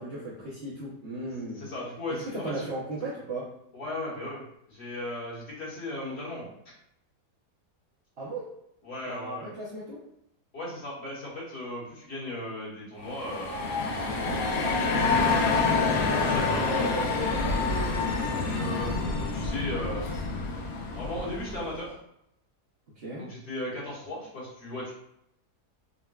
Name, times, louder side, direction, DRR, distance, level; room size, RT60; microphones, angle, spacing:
voice 1, 0.0-1.7 2.1-3.4 8.2-8.5 9.1-10.0 14.2-14.4 23.0-23.3, right 2 dB, 55° right, -7 dB, 0.7 m, -36 dB
voice 2, 1.5-2.7 3.7-6.5 8.8-9.5 10.5-13.9 14.6-15.9 16.2-17.0 18.2-20.1 20.9-22.0 23.2-24.9, left 1 dB, 45° left, -7 dB, 1.3 m, -37 dB
sound 1, 13.0-21.8, left 3 dB, 80° left, 1.1 m, -27 dB
3.8 x 2.1 x 2.3 m, 0.77 s
omnidirectional pair, 1.7 m